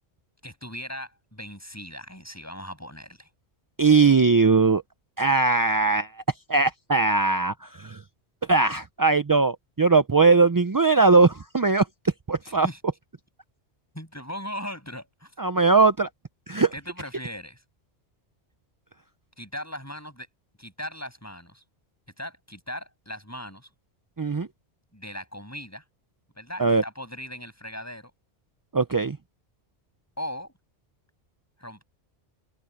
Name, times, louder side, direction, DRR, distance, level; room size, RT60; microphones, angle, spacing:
voice 1, 0.4-3.3 12.4-12.8 13.9-15.3 16.7-17.6 19.4-20.3 20.6-21.6 22.2-23.7 24.9-25.8 26.4-28.1 30.2-30.5 31.6-31.8, equal, 15° left, 7.7 m, -38 dB
voice 2, 3.8-4.8 5.2-6.1 6.5-8.0 8.5-11.9 12.3-12.7 15.4-16.1 16.5-16.7 24.2-24.5 26.6-26.8 28.7-29.2, right 4 dB, 35° right, 0.3 m, -20 dB
omnidirectional pair, 1.1 m